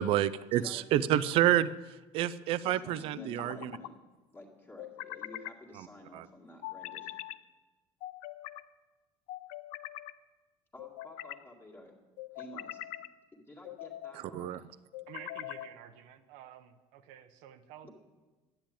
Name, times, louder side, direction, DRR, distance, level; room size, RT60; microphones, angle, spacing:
voice 1, 0.0-1.7 2.1-3.7 6.1-6.2 14.3-14.6, right 12 dB, 45° right, 15 dB, 0.5 m, -28 dB
voice 2, 0.5-1.3 2.6-4.0 4.3-7.2 10.7-11.9 12.3-12.8 13.3-14.6 17.8-17.9, left 1 dB, 15° left, 0 dB, 2.0 m, -51 dB
sound 1, 1.1-1.8 3.2-3.9 4.8-5.6 6.6-7.4 8.0-8.6 9.3-10.1 10.8-11.4 12.2-13.1 13.6-14.2 14.9-15.7, left 14 dB, 80° left, 0.6 m, -43 dB
voice 3, 15.1-17.9, right 10 dB, 80° right, 7 dB, 1.0 m, -51 dB
12.0 x 10.5 x 8.8 m, 1.2 s
cardioid pair, 175°, 13 cm